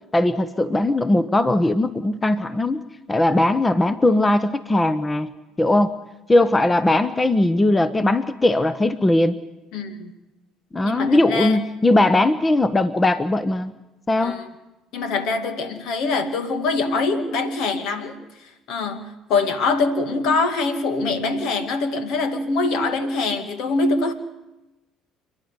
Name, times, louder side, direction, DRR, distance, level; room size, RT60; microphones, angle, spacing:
voice 1, 0.1-2.8 3.1-5.3 5.6-5.9 6.3-9.4 10.7-13.7 14.1-14.4, left 2 dB, 20° left, 13 dB, 1.0 m, -19 dB
voice 2, 9.7-10.1 10.8-11.6 14.2-14.5 14.9-18.2 18.7-24.1, left 3 dB, 70° left, 8 dB, 2.3 m, -24 dB
28.5 x 10.5 x 9.7 m, 1.0 s
hypercardioid pair, 65°, 0 cm